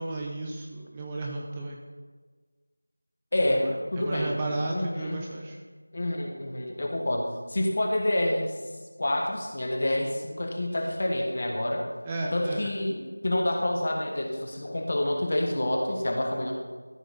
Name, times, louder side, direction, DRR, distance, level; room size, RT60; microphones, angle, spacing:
voice 1, 0.0-1.8 3.5-5.6 12.1-12.7, right 2 dB, 10° right, -2 dB, 0.5 m, -33 dB
voice 2, 3.3-4.4 4.7-5.2 5.9-8.6 9.0-11.9 12.3-16.5, left 1 dB, 40° left, 2 dB, 1.2 m, -28 dB
13.5 x 4.8 x 4.0 m, 1.5 s
figure-of-eight pair, 175°, 0 cm